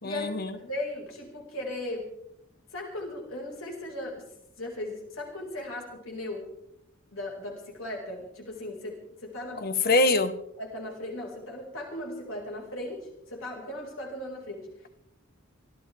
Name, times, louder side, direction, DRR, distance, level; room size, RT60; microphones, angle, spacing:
voice 1, 0.0-0.6 9.5-10.3, left 2 dB, 45° left, 10 dB, 1.2 m, -24 dB
voice 2, 0.5-2.1 2.7-4.3 4.6-6.5 7.1-9.7 10.6-14.7, left 1 dB, 75° left, 0 dB, 5.2 m, -37 dB
27.5 x 13.0 x 3.5 m, 0.77 s
head